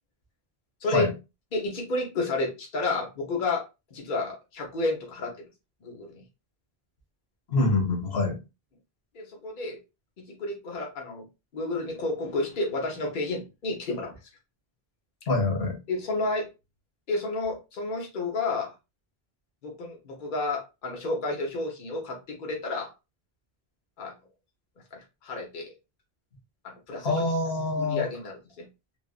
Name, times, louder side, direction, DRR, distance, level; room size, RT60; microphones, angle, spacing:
voice 1, 1.5-3.6 3.9-5.3 5.8-6.2 9.1-9.8 10.2-11.3 11.5-14.1 15.9-16.5 17.1-18.7 19.6-22.9 24.0-24.1 24.9-25.7 26.6-27.3 27.8-28.7, left 2 dB, 55° left, 1.0 m, -31 dB
voice 2, 7.5-8.4 15.3-15.8 27.0-28.1, left 2 dB, 85° left, 1.3 m, -25 dB
3.3 x 2.4 x 2.3 m
omnidirectional pair, 1.0 m